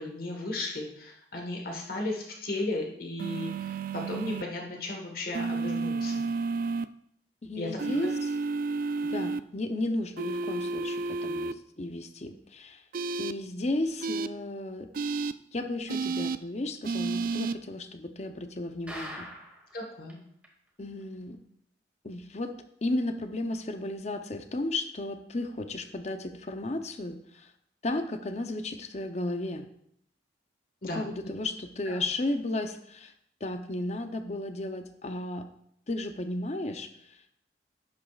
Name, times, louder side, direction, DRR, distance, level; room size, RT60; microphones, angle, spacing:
voice 1, 0.0-6.3 7.5-8.0 19.7-20.2 30.8-31.0 31.8-32.0, left 2 dB, 50° left, 1 dB, 1.4 m, -35 dB
sound 1, 3.2-4.4 5.3-6.8 7.8-9.4 10.2-11.5 12.9-13.3 14.0-14.3 14.9-15.3 15.9-16.4 16.8-17.5, right 4 dB, 50° right, 0.3 m, -31 dB
voice 2, 7.4-8.1 9.1-12.8 13.2-14.9 15.5-19.3 20.8-21.4 22.0-27.5 27.8-29.7 31.0-33.1 33.4-35.5 35.9-37.3, left 2 dB, 35° left, 7 dB, 0.6 m, -34 dB
sound 2, 18.9-19.7 20.1-20.2 20.4-20.5 21.0-21.1, equal, 5° right, 1.4 m, -41 dB
11.5 x 8.6 x 2.4 m, 0.72 s
head